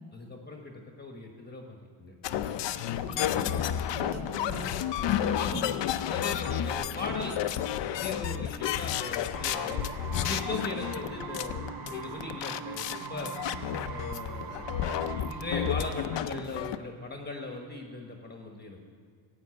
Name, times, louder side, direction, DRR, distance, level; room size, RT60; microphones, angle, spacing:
voice 1, 0.1-2.1 5.4-5.6 6.1-7.4 7.8-9.9 10.1-13.3 13.9-14.6 15.1-18.8, left 2 dB, 20° left, 2 dB, 1.1 m, -39 dB
sound 1, 2.2-16.8, left 10 dB, 60° left, 0.7 m, -31 dB
voice 2, 3.0-5.7, right 1 dB, 30° right, -1 dB, 2.6 m, -41 dB
sound 2, 9.3-16.3, right 6 dB, 45° right, 1.1 m, -41 dB
16.5 x 9.2 x 7.6 m, 2.1 s
cardioid pair, 160°, 50 cm